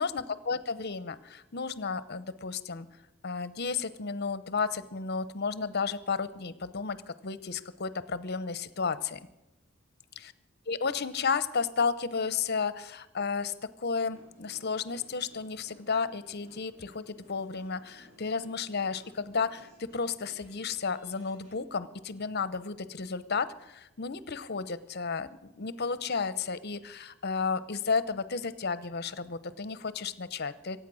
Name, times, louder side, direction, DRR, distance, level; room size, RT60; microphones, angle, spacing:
voice 1, 0.0-2.9 3.2-9.2 10.7-30.8, left 5 dB, 50° left, 15 dB, 0.9 m, -32 dB
sound 1, 14.0-21.6, equal, 35° right, 6.7 m, -59 dB
24.0 x 9.2 x 6.3 m, 0.97 s
head